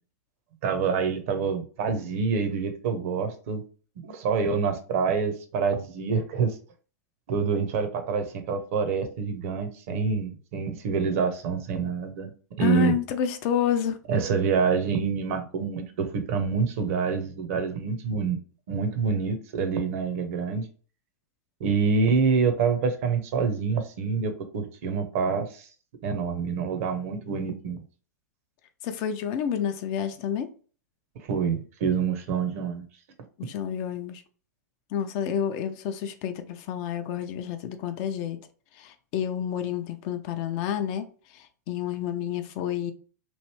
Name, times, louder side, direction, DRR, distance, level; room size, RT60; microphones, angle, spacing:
voice 1, 0.6-3.6 4.0-6.6 7.3-12.3 12.6-12.9 14.1-18.4 18.7-20.7 21.6-25.7 26.0-27.8 31.3-32.9, right 5 dB, 50° right, 0.7 m, -26 dB
voice 2, 12.6-14.0 28.8-30.5 33.4-34.2 34.9-38.4 38.8-41.1 41.3-42.9, left 9 dB, 40° left, 0.5 m, -29 dB
3.1 x 2.6 x 3.0 m
figure-of-eight pair, 100°, 9 cm